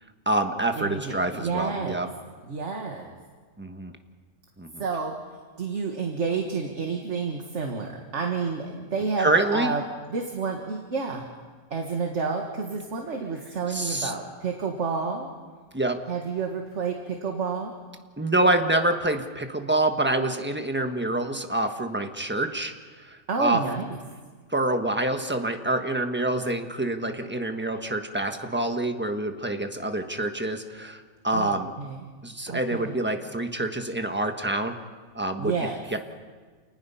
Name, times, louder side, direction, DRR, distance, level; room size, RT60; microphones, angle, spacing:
voice 1, 0.3-2.1 3.6-3.9 4.6-4.8 9.2-9.7 13.7-14.1 15.7-16.0 18.2-22.7 23.4-23.6 24.5-31.7 32.2-34.8 35.1-35.5 35.9-36.0, right 2 dB, 10° right, 5 dB, 1.2 m, -26 dB
voice 2, 0.8-2.0 2.5-3.1 4.8-5.1 5.6-9.8 10.1-11.2 11.7-15.3 16.1-17.7 23.3-24.0 31.3-32.0 32.5-33.0 35.4-35.8, right 5 dB, 50° right, 2 dB, 1.9 m, -30 dB
28.5 x 20.0 x 5.7 m, 1.5 s
omnidirectional pair, 1.6 m